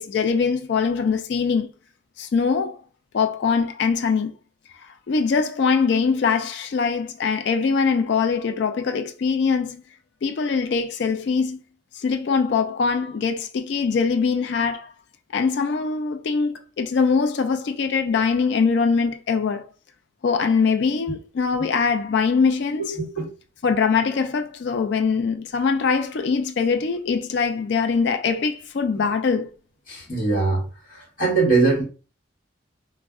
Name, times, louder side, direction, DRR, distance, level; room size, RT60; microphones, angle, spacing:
voice 1, 0.0-1.7 2.2-2.8 3.1-4.3 5.1-9.8 10.2-11.6 11.9-14.9 15.3-19.6 20.2-23.0 23.6-29.5, left 5 dB, 60° left, 0.3 m, -22 dB
voice 2, 22.8-23.3 29.9-30.6 30.9-31.8, right 4 dB, 45° left, 1.2 m, -21 dB
2.4 x 2.0 x 3.5 m
head